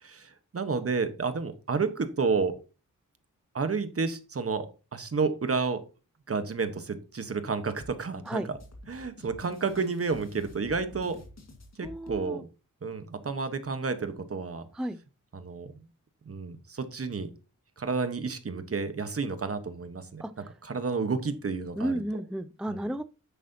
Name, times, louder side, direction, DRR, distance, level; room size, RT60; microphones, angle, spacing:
voice 1, 0.0-2.5 3.5-4.7 4.9-5.8 6.3-8.6 8.9-11.2 11.8-12.4 12.8-14.6 15.3-15.7 16.3-17.3 17.8-20.2 20.6-22.0 22.7-22.9, right 4 dB, 45° right, 9 dB, 1.2 m, -30 dB
sound 1, 7.8-12.2, left 1 dB, 55° left, 1.9 m, -48 dB
voice 2, 11.8-12.4 14.7-15.0 20.2-20.3 21.8-23.0, right 1 dB, 5° right, 11 dB, 0.4 m, -32 dB
10.5 x 8.4 x 2.8 m, 0.33 s
wide cardioid pair, 150°, 32 cm